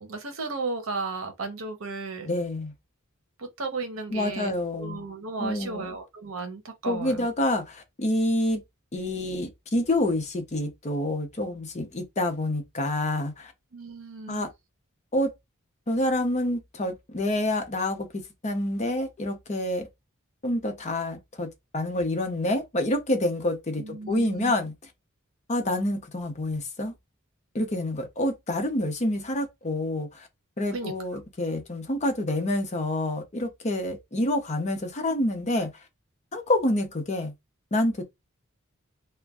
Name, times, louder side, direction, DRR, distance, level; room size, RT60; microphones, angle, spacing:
voice 1, 0.0-2.3 3.4-4.5 4.8-7.3 13.7-14.5 23.8-24.5 30.7-30.9, right 3 dB, 70° right, 0.8 m, -34 dB
voice 2, 2.2-2.7 4.1-5.0 5.4-6.0 6.9-8.6 8.9-13.5 14.3-14.5 15.1-15.3 15.9-18.1 18.4-19.9 20.4-24.7 25.5-26.9 27.5-30.3 30.6-35.8 36.3-37.3 37.7-38.0, left 1 dB, 35° left, 0.6 m, -27 dB
2.5 x 2.2 x 3.4 m
head